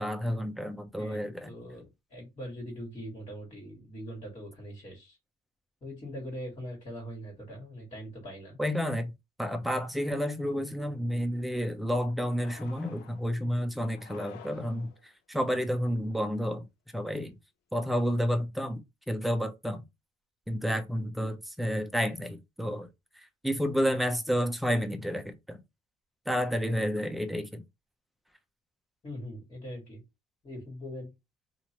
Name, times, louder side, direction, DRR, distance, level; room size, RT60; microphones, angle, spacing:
voice 1, 0.0-1.5 8.6-9.1 9.4-16.7 16.9-17.3 17.7-18.8 19.1-19.8 20.5-22.9 23.1-25.6 26.3-27.6, equal, ahead, 0.6 m, -30 dB
voice 2, 1.0-1.9 2.1-5.2 5.8-8.6 29.0-30.0 30.4-31.1, equal, 30° left, 1.8 m, -42 dB
sound 1, 12.4-13.3 13.9-15.1, left 9 dB, 80° left, 0.5 m, -51 dB
2.9 x 2.5 x 2.9 m
cardioid pair, 110°, 17 cm